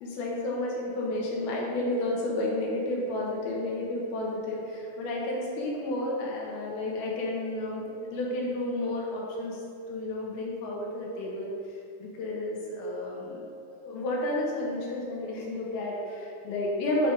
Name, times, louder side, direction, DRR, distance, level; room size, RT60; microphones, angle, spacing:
voice 1, 0.0-9.6 9.9-11.5 12.0-17.1, left 1 dB, 75° left, -3 dB, 2.7 m, -31 dB
8.0 x 4.2 x 5.0 m, 2.4 s
omnidirectional pair, 4.9 m